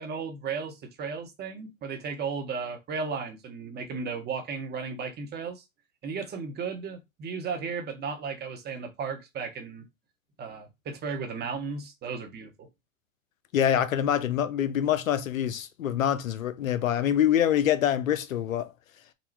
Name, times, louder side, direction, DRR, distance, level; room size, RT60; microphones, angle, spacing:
voice 1, 0.0-5.6 6.0-9.8 10.4-12.7, right 5 dB, 25° right, 1.0 m, -35 dB
voice 2, 13.5-18.7, left 10 dB, 85° left, 0.7 m, -25 dB
4.0 x 2.3 x 4.4 m
hypercardioid pair, 110°, 39 cm